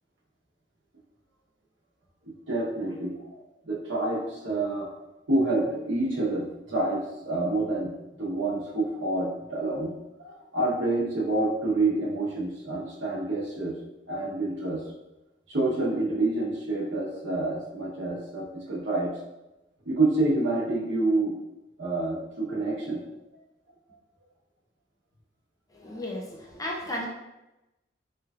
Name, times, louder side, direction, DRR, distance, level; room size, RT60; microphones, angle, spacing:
voice 1, 2.2-4.9 5.3-7.9 8.2-9.9 10.2-13.8 14.1-14.8 15.5-19.1 19.8-21.4 21.8-23.0, right 2 dB, 80° right, -4 dB, 0.9 m, -28 dB
voice 2, 25.7-27.1, left 1 dB, 20° left, -2 dB, 0.5 m, -34 dB
3.4 x 3.1 x 2.4 m, 0.97 s
head